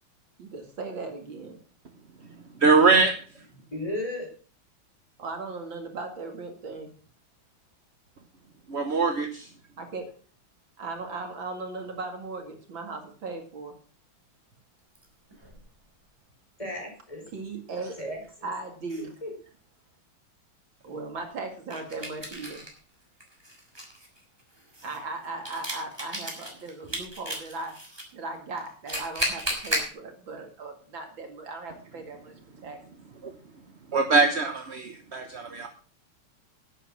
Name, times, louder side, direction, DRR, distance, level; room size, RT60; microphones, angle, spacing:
voice 1, 0.4-1.6 5.2-6.9 9.8-10.1 10.8-13.7 17.3-18.0 18.4-19.1 20.8-22.7 24.8-27.7 28.1-32.3 32.6-32.8, right 3 dB, 60° right, 4 dB, 2.9 m, -37 dB
voice 2, 2.6-3.1 8.7-9.5 33.2-33.3 33.9-35.7, right 4 dB, 40° right, 6 dB, 1.0 m, -22 dB
voice 3, 3.7-4.3 16.6-17.2 18.0-18.5 19.0-19.3, left 1 dB, 15° left, 0 dB, 4.9 m, -35 dB
sound 1, 14.9-15.6 18.1-18.2 18.9-19.0 21.7-22.8 23.2-28.0 28.6-29.9, equal, 10° right, 3.6 m, -34 dB
11.0 x 9.1 x 6.2 m, 0.41 s
omnidirectional pair, 2.4 m